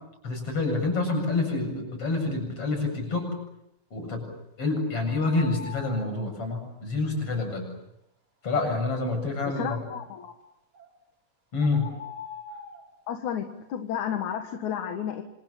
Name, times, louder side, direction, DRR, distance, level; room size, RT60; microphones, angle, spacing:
voice 1, 0.2-3.3 3.9-4.3 4.6-7.7 8.4-9.8 11.5-11.9, left 3 dB, 50° left, 4 dB, 8.8 m, -27 dB
sound 1, 5.2-6.2 10.7-10.9 11.6-12.9, left 5 dB, 30° right, 5.5 m, -42 dB
voice 2, 9.5-10.3 13.1-15.2, left 9 dB, 75° left, 5 dB, 3.0 m, -32 dB
28.0 x 26.5 x 7.4 m, 0.83 s
omnidirectional pair, 3.4 m